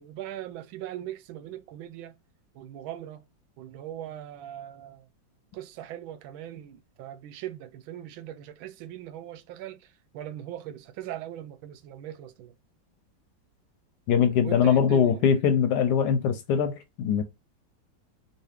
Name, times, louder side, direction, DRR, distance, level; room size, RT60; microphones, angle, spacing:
voice 1, 0.0-2.2 2.5-3.2 3.6-5.1 5.5-12.5 14.4-15.2, right 12 dB, 90° right, 1.4 m, -40 dB
voice 2, 14.1-17.2, left 7 dB, 70° left, 1.0 m, -22 dB
4.0 x 2.4 x 3.4 m
omnidirectional pair, 2.1 m